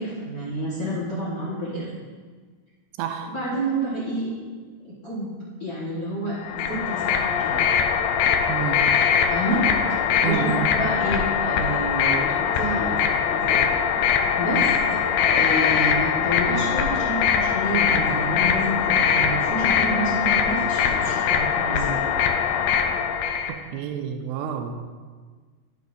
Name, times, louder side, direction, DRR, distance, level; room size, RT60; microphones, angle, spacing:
voice 1, 0.0-1.8 3.3-4.3 5.0-5.3 5.6-7.6 9.3-9.7 10.2-13.6 14.3-22.0, right 1 dB, 70° left, -8 dB, 0.8 m, -29 dB
voice 2, 3.0-3.3 8.5-8.9 10.2-10.7 23.5-24.7, right 9 dB, 85° right, 6 dB, 2.5 m, -29 dB
sound 1, 6.4-23.5, left 7 dB, 90° left, 2.7 m, -22 dB
12.5 x 6.2 x 2.6 m, 1.5 s
omnidirectional pair, 4.5 m